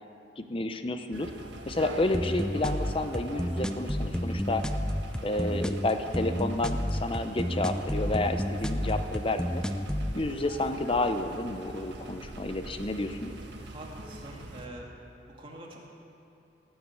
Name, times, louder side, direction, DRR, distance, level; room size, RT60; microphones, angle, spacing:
voice 1, 0.4-1.3 1.7-4.6 5.2-9.6 10.1-13.3, left 2 dB, 30° left, 8 dB, 0.8 m, -30 dB
sound 1, 1.1-14.7, right 1 dB, 85° right, 1.5 m, -43 dB
sound 2, 2.1-10.1, equal, 5° left, 0.5 m, -31 dB
voice 2, 13.6-14.9 15.2-15.8, right 1 dB, 30° right, -1 dB, 2.3 m, -45 dB
18.5 x 7.8 x 8.4 m, 2.8 s
head